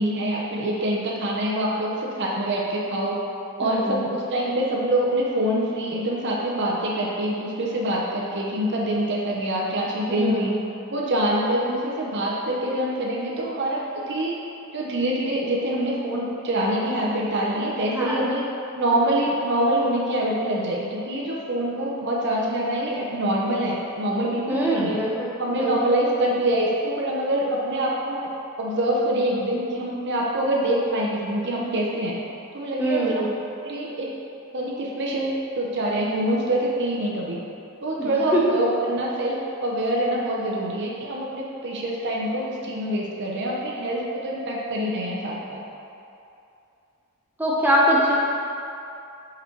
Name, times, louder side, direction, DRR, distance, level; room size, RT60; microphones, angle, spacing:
voice 1, 0.0-3.2 3.6-10.5 10.9-14.4 14.7-18.4 18.7-25.0 25.4-28.3 28.6-32.2 32.5-33.2 33.6-34.1 34.5-37.4 37.8-45.6, right 1 dB, 55° right, -3 dB, 0.8 m, -25 dB
voice 2, 3.6-4.1 10.1-10.5 17.9-18.2 24.5-25.3 25.6-25.7 32.8-33.3 38.0-38.4 47.4-48.1, right 1 dB, 10° right, -5 dB, 0.8 m, -23 dB
5.3 x 4.1 x 4.5 m, 2.7 s
head